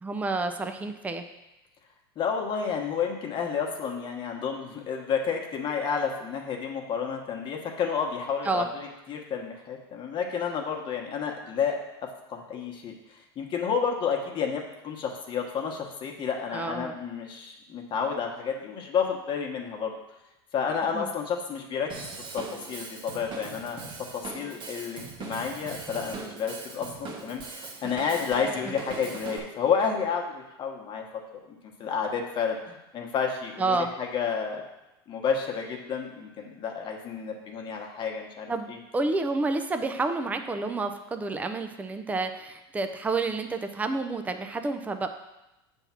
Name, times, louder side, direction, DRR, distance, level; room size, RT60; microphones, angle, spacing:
voice 1, 0.0-1.2 8.5-8.7 16.5-17.0 20.9-21.1 33.6-33.9 38.5-45.1, right 3 dB, 10° right, 7 dB, 0.5 m, -29 dB
voice 2, 2.2-11.8 12.3-12.9 13.4-19.9 20.5-21.9 22.3-23.8 24.1-27.4 27.8-31.0 31.8-34.6 35.1-38.8, left 6 dB, 40° left, 1 dB, 1.2 m, -30 dB
Drum kit / Drum, 21.9-29.4, right 4 dB, 40° right, 1.2 m, -40 dB
6.9 x 3.6 x 5.8 m, 0.95 s
supercardioid pair, 105°, 13 cm